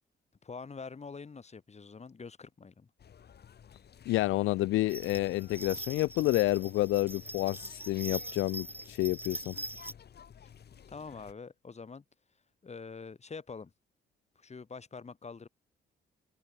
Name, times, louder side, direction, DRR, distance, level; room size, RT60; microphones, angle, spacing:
voice 1, 0.4-2.9 10.9-12.0 12.6-13.7 14.4-15.5, left 5 dB, 35° left, 7.9 m, -45 dB
sound 1, 3.0-11.3, left 8 dB, 55° left, 5.8 m, -54 dB
voice 2, 4.1-9.6, left 17 dB, 85° left, 0.6 m, -29 dB
sound 2, 4.9-9.9, right 1 dB, 10° right, 2.9 m, -42 dB
cardioid pair, 90°, 20 cm